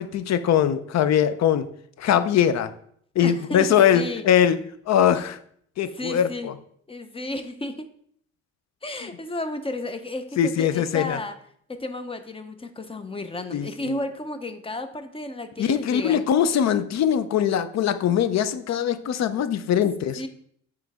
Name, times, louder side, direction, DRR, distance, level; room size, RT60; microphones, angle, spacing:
voice 1, 0.0-1.7 2.0-2.7 3.2-4.6 4.9-5.4 5.8-6.5 9.0-9.1 10.4-11.2 13.5-14.0 15.6-20.2, left 9 dB, 60° left, 12 dB, 0.6 m, -21 dB
voice 2, 3.2-4.6 5.9-6.5 6.9-7.8 8.8-11.3 11.7-16.3 20.2-20.3, left 2 dB, 20° left, 8 dB, 0.7 m, -33 dB
8.8 x 3.3 x 3.5 m, 0.64 s
cardioid pair, 90°, 30 cm